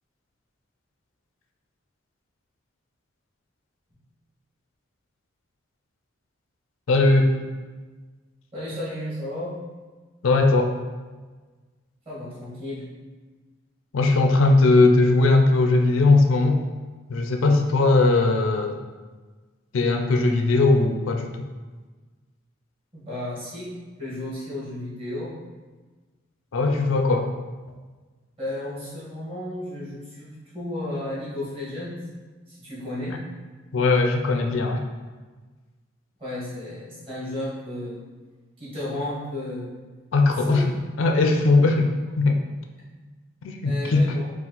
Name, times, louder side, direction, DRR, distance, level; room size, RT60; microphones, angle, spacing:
voice 1, 6.9-7.3 10.2-10.7 13.9-16.6 17.1-18.8 19.7-21.3 26.5-27.3 33.7-34.8 40.1-40.6 41.0-42.4 43.4-44.1, left 3 dB, 85° left, 4 dB, 0.4 m, -19 dB
voice 2, 8.5-9.6 12.0-12.8 22.9-23.7 24.0-25.3 28.4-32.0 32.5-33.2 36.2-38.0 38.6-39.7 40.4-40.6 43.6-44.3, left 1 dB, 30° right, -9 dB, 1.5 m, -33 dB
4.2 x 2.4 x 3.9 m, 1.3 s
head